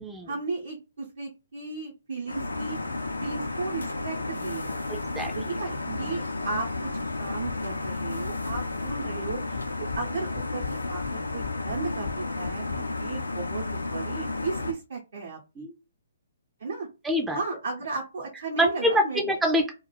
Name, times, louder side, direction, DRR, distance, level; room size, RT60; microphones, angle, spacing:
voice 1, 0.3-2.8 3.2-4.8 5.2-6.9 7.2-15.7 16.6-16.9 17.3-19.3, right 4 dB, 60° right, -2 dB, 0.8 m, -35 dB
sound 1, 2.3-14.7, left 3 dB, 85° left, 0.5 m, -32 dB
voice 2, 4.9-5.3 6.0-6.1 15.6-15.7 17.0-17.4 18.6-19.7, equal, 5° right, 3 dB, 0.4 m, -25 dB
sound 2, 7.4-8.0 8.2-9.0 9.3-10.1 10.3-12.8, left 8 dB, 50° left, 0.6 m, -39 dB
2.4 x 2.3 x 3.3 m, 0.29 s
figure-of-eight pair, 130°, 0 cm